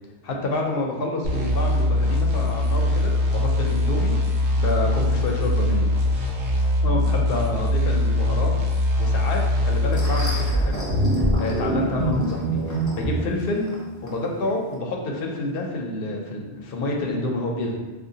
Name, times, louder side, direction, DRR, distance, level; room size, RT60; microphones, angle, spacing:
voice 1, 0.2-5.9 6.8-8.5 9.0-10.9 11.4-13.7 14.0-17.8, left 2 dB, 65° left, 0 dB, 0.7 m, -28 dB
sound 1, 1.2-10.7, left 1 dB, 70° right, 0.9 m, -22 dB
sound 2, 9.6-14.8, equal, 30° left, 0.3 m, -39 dB
sound 3, 10.7-13.2, right 1 dB, 20° right, 1.4 m, -23 dB
3.6 x 2.4 x 2.7 m, 1.2 s
omnidirectional pair, 1.2 m